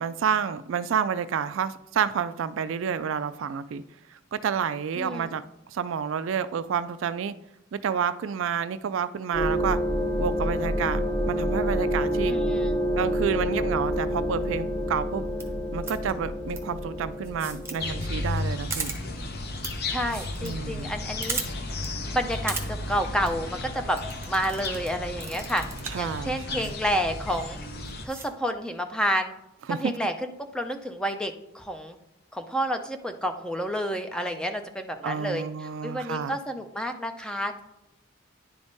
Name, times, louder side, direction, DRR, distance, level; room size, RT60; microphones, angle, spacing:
voice 1, 0.0-3.8 4.1-5.4 5.7-7.3 7.7-9.8 10.2-11.0 11.3-12.3 13.0-15.2 15.7-19.0 20.4-20.9 25.9-26.7 29.7-29.9 35.0-36.4, right 7 dB, 65° right, 0.3 m, -29 dB
voice 2, 5.0-5.3 12.3-12.7 19.9-21.4 22.0-24.0 24.2-25.6 26.0-27.6 28.0-29.3 29.7-32.0 32.3-37.6, equal, 5° left, 0.4 m, -30 dB
sound 1, 9.3-18.5, equal, 25° left, 1.3 m, -28 dB
sound 2, 15.3-15.4 15.8-16.1 16.5-16.6 17.2-17.7 18.0-18.1 18.3-18.4 18.7-19.0 19.6-19.7 20.0-20.5 20.8-20.9 21.2-21.5 21.8-21.9 22.3-22.6 23.1-23.3 24.0-24.9 25.2-26.0 26.6-26.7 27.3-27.4 27.8-28.3, right 4 dB, 10° right, 0.8 m, -34 dB
sound 3, 17.8-28.1, left 2 dB, 50° left, 0.8 m, -34 dB
10.0 x 3.5 x 4.0 m
head